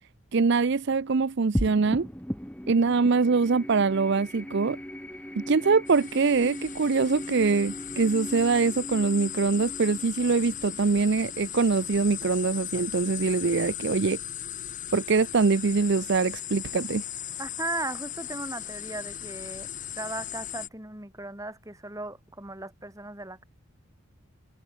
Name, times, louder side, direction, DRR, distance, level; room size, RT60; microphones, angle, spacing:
voice 1, 0.3-2.1 2.7-4.8 5.4-14.2 14.9-17.0, right 4 dB, 55° right, 0.5 m, -24 dB
sound 1, 1.5-12.2, equal, 5° left, 3.0 m, -38 dB
sound 2, 5.9-20.7, left 11 dB, 35° left, 3.5 m, -37 dB
voice 2, 17.4-19.7 19.9-23.4, right 2 dB, 15° right, 3.8 m, -37 dB
head